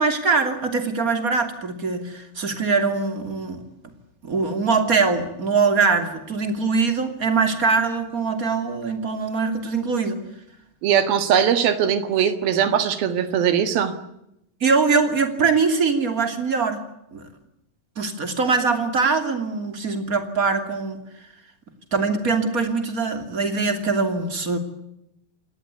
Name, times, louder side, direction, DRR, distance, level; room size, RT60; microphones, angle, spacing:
voice 1, 0.0-3.6 4.2-10.2 14.6-16.8 17.1-17.2 18.0-21.0 21.9-24.6, right 4 dB, 25° right, 7 dB, 2.9 m, -22 dB
voice 2, 10.8-14.0, right 8 dB, 85° right, 10 dB, 3.7 m, -20 dB
28.5 x 19.0 x 8.4 m, 0.83 s
omnidirectional pair, 4.1 m